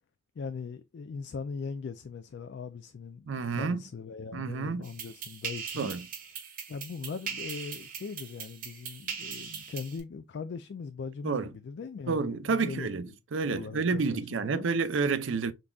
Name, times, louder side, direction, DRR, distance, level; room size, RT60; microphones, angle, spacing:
voice 1, 0.4-3.3 3.5-5.9 6.7-13.2 13.4-14.7, left 5 dB, 60° left, 0.3 m, -40 dB
voice 2, 3.3-3.8 4.3-4.9 5.8-6.1 11.2-11.5 12.1-13.0 13.3-15.5, right 4 dB, 80° right, 0.5 m, -29 dB
sound 1, 4.8-10.0, right 6 dB, 45° right, 0.8 m, -40 dB
3.9 x 3.4 x 2.3 m
head